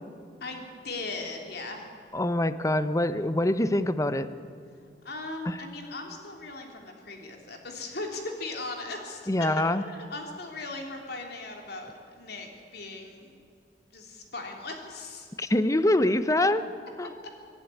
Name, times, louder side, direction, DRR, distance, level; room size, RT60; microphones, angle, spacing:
voice 1, 0.4-1.8 5.0-9.5 9.9-13.3 13.9-15.3, left 2 dB, 65° left, 2 dB, 3.4 m, -38 dB
voice 2, 2.1-4.3 5.5-5.6 9.3-9.8 15.4-16.7 17.0-17.1, left 1 dB, 20° left, 12 dB, 0.7 m, -24 dB
25.5 x 11.5 x 9.9 m, 2.4 s
head